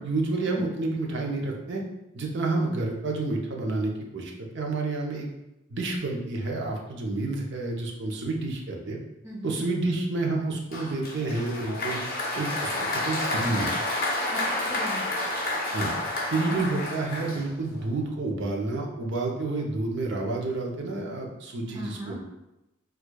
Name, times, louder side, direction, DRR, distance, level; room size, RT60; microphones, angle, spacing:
voice 1, 0.0-1.8 2.1-5.3 5.7-9.0 9.4-12.0 12.4-12.7 13.0-13.7 15.7-15.9 16.3-22.2, right 2 dB, 60° right, 0 dB, 0.6 m, -29 dB
voice 2, 9.2-9.6 14.3-15.1 16.5-16.6 21.7-22.2, right 1 dB, 15° right, -3 dB, 0.6 m, -38 dB
Applause, 10.7-17.8, left 2 dB, 45° left, 0.8 m, -30 dB
4.6 x 2.3 x 2.2 m, 0.93 s
head